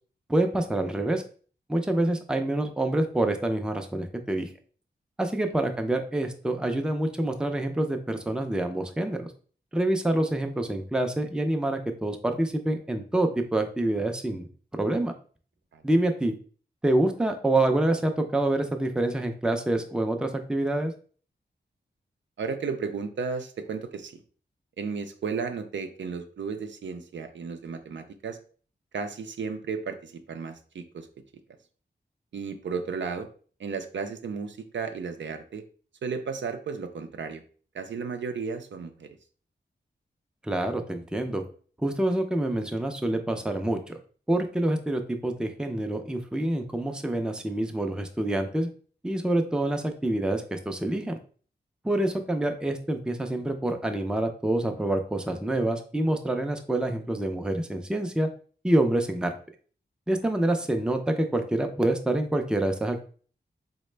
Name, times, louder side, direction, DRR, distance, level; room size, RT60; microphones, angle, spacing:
voice 1, 0.3-1.2 1.7-4.5 5.2-9.3 9.7-14.5 14.8-15.1 15.8-16.3 16.8-20.9 40.4-41.4 41.8-44.0 44.3-48.7 49.0-51.2 51.8-58.3 58.6-59.4 60.1-63.0, right 1 dB, 5° right, 5 dB, 0.4 m, -26 dB
voice 2, 22.4-24.2 24.8-28.4 28.9-31.1 32.3-33.3 33.6-35.6 36.0-37.4 37.7-39.1, right 5 dB, 80° right, 7 dB, 0.5 m, -34 dB
3.9 x 2.1 x 3.2 m, 0.42 s
wide cardioid pair, 80°, 19 cm